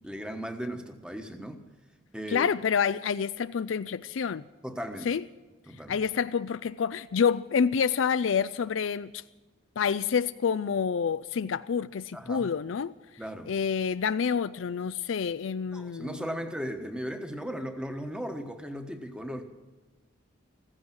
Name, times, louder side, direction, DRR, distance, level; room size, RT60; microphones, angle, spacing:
voice 1, 0.0-1.6 2.1-2.5 4.6-5.1 5.7-6.0 12.1-12.5 13.2-13.5 15.7-19.4, equal, 5° right, 6 dB, 1.3 m, -37 dB
voice 2, 2.3-4.4 5.0-5.2 5.9-9.2 9.8-12.9 13.5-16.2, left 6 dB, 75° left, 13 dB, 0.4 m, -28 dB
15.5 x 15.0 x 6.1 m, 1.2 s
head